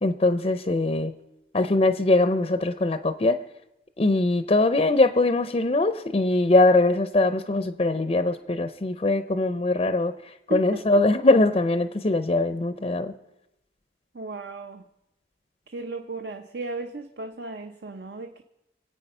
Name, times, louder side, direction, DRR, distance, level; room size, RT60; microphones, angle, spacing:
voice 1, 0.0-1.1 1.5-3.4 4.0-13.1, left 2 dB, 35° left, 10 dB, 0.5 m, -22 dB
voice 2, 10.5-11.0 14.1-14.9 15.7-18.4, right 2 dB, 65° right, 6 dB, 0.7 m, -35 dB
24.5 x 8.6 x 5.4 m, 0.90 s
head